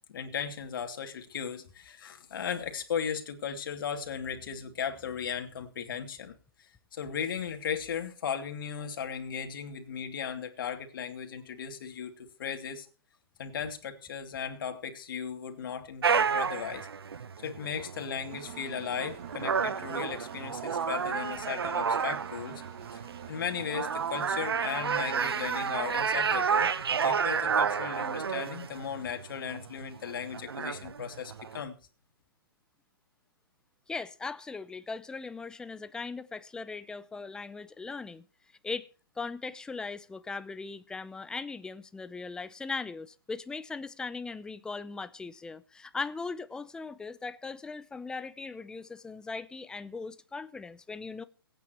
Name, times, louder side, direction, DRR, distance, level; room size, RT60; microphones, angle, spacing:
voice 1, 0.1-6.4 6.9-12.9 13.4-16.9 17.4-22.6 22.9-23.0 23.3-31.8, left 7 dB, 60° left, 2.7 m, -36 dB
sound 1, 16.0-31.6, right 6 dB, 85° right, 1.0 m, -31 dB
Engine, 18.3-25.9, right 11 dB, 40° right, 1.9 m, -48 dB
voice 2, 33.9-38.2 38.6-38.9 39.2-51.2, left 4 dB, 5° left, 0.6 m, -39 dB
23.5 x 9.2 x 3.0 m
hypercardioid pair, 145°, 12 cm